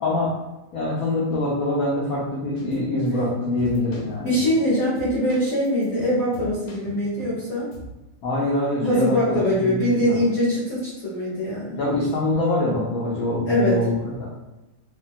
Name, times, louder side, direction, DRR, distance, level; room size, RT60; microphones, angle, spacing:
voice 1, 0.0-0.3 0.7-4.3 8.2-10.2 11.8-14.3, left 1 dB, 90° left, -5 dB, 0.7 m, -24 dB
sound 1, 2.6-2.8 3.1-3.2 3.6-4.7 5.0-7.4 7.7-8.0, equal, 70° left, 1.3 m, -41 dB
voice 2, 4.2-7.7 8.8-11.8 13.5-13.8, equal, 50° left, -10 dB, 1.2 m, -22 dB
3.2 x 2.2 x 2.6 m, 1.0 s
omnidirectional pair, 2.2 m